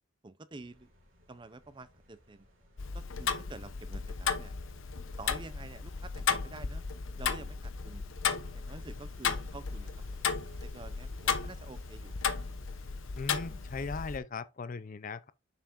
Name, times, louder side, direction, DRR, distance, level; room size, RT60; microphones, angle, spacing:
voice 1, 0.2-0.9 1.3-2.5 2.9-4.5 5.2-6.8 7.2-8.0 8.5-9.9 10.2-10.3 10.6-12.4, right 3 dB, 25° right, 0.5 m, -49 dB
sound 1, 0.6-14.2, right 1 dB, 70° right, 2.2 m, -59 dB
Tick-tock, 2.8-14.2, left 6 dB, 70° left, 0.8 m, -35 dB
voice 2, 13.1-15.3, left 4 dB, 40° left, 0.5 m, -38 dB
7.1 x 5.7 x 2.5 m
head